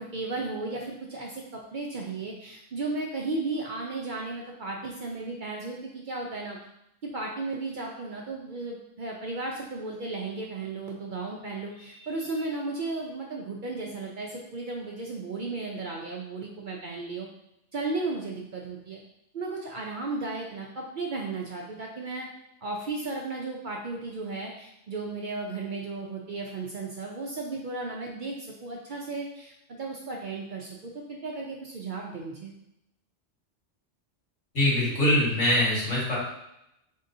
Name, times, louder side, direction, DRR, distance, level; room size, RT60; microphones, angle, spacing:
voice 1, 0.0-6.6 7.0-17.3 17.7-19.0 19.3-22.3 22.6-32.5, right 3 dB, 55° right, -1 dB, 0.6 m, -35 dB
voice 2, 34.5-36.2, left 1 dB, 85° left, -6 dB, 2.0 m, -23 dB
3.9 x 3.5 x 2.6 m, 0.81 s
omnidirectional pair, 1.2 m